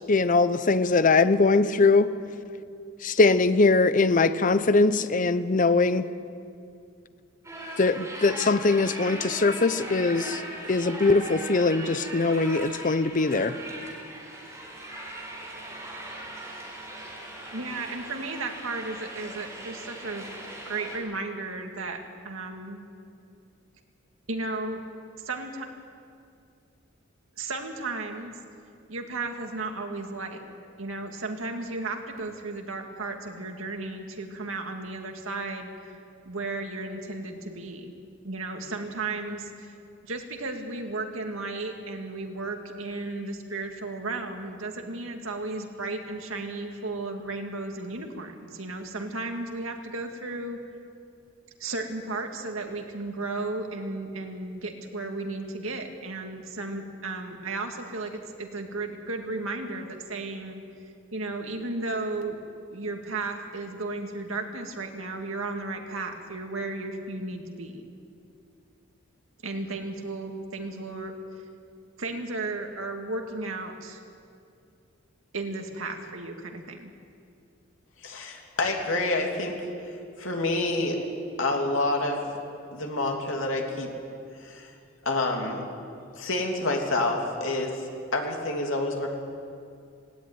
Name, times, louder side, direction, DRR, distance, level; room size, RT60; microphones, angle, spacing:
voice 1, 0.1-2.1 3.0-6.1 7.8-10.4 10.7-13.5, left 3 dB, 40° left, 13 dB, 0.7 m, -21 dB
sound 1, 7.4-21.0, right 1 dB, 15° right, 4.2 m, -39 dB
voice 2, 17.5-20.3 20.7-22.9 24.3-24.8 25.2-25.7 27.4-28.3 28.9-30.4 30.8-37.9 38.2-39.7 40.0-50.6 51.6-60.6 61.1-62.4 62.7-67.9 69.4-71.1 72.0-74.0 75.3-76.9, right 2 dB, 85° right, 4 dB, 2.2 m, -34 dB
voice 3, 78.0-79.7 80.2-81.0 81.4-82.3 82.7-83.9 84.4-84.7 85.0-85.7 86.1-87.8 88.1-89.1, left 2 dB, 75° left, 1 dB, 2.9 m, -28 dB
18.0 x 17.0 x 9.6 m, 2.5 s
head